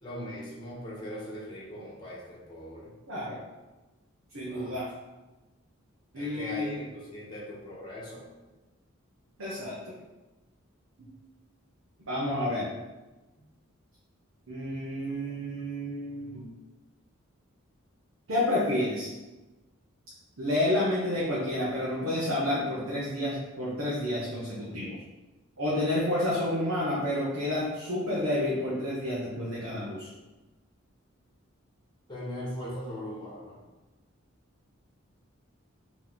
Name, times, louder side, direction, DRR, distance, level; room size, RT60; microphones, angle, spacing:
voice 1, 0.0-2.9 4.5-4.7 6.1-8.2 32.1-33.6, equal, 20° left, -6 dB, 1.2 m, -40 dB
voice 2, 3.1-3.4 4.3-4.9 6.1-6.8 9.4-9.8 12.1-12.7 14.5-16.5 18.3-19.1 20.4-25.0 25.6-30.1, left 1 dB, 70° right, -7 dB, 0.9 m, -30 dB
4.0 x 3.0 x 3.7 m, 1.1 s
head